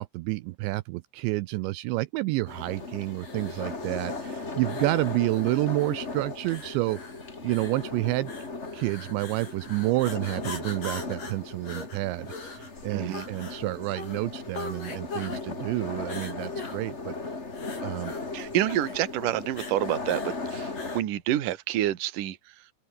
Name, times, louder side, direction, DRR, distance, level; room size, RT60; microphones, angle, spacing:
voice 1, 0.0-7.0 7.4-8.3 8.7-17.1 17.8-18.1, right 21 dB, 85° right, 2.5 m, -29 dB
sound 1, 2.5-21.0, left 3 dB, 25° left, 1.6 m, -37 dB
sound 2, 3.2-21.1, left 4 dB, 40° left, 8.3 m, -43 dB
voice 2, 12.9-13.3 18.3-22.4, right 13 dB, 60° right, 2.4 m, -28 dB
open air
omnidirectional pair, 5.9 m